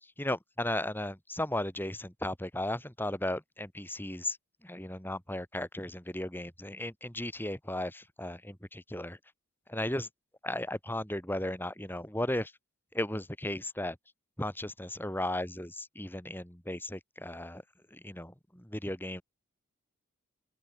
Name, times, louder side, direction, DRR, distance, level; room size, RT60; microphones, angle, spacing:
voice 1, 0.2-4.4 4.6-9.2 9.7-10.1 10.4-12.5 12.9-14.0 14.4-17.6 17.9-19.2, left 1 dB, 10° left, 5.1 m, -35 dB
open air
head